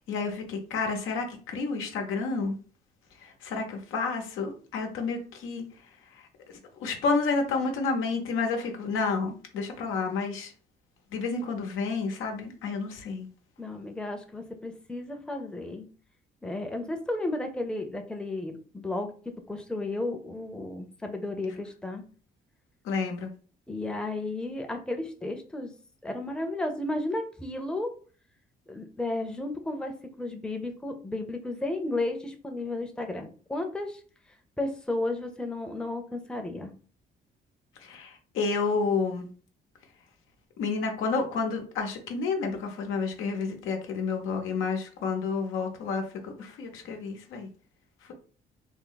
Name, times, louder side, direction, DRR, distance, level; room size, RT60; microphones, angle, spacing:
voice 1, 0.1-2.6 3.2-5.6 6.8-10.5 11.1-13.3 22.8-23.3 37.8-39.3 40.6-47.5, left 4 dB, 90° left, 3 dB, 0.8 m, -30 dB
voice 2, 13.6-15.9 16.4-19.1 19.5-22.0 23.7-25.7 26.0-27.9 28.7-29.9 30.2-34.0 34.6-36.7, left 2 dB, 5° left, 4 dB, 0.6 m, -33 dB
3.5 x 2.1 x 3.8 m, 0.41 s
cardioid pair, 90°, 20 cm